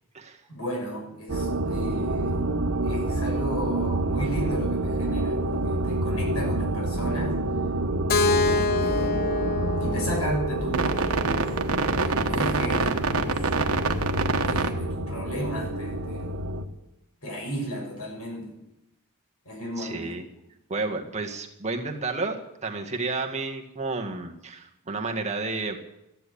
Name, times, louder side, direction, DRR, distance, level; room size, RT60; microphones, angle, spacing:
voice 1, 0.5-2.4 2.8-7.4 8.3-11.5 12.0-13.5 14.4-16.5 17.2-18.5 19.4-20.2, equal, 90° left, 1 dB, 6.5 m, -34 dB
sound 1, 1.3-16.6, right 2 dB, 75° right, 1.3 m, -26 dB
Keyboard (musical), 8.1-12.0, left 4 dB, 45° left, 0.8 m, -27 dB
voice 2, 19.8-20.3 20.7-25.8, right 3 dB, 30° right, 2 dB, 1.7 m, -31 dB
14.5 x 10.5 x 8.5 m, 0.86 s
head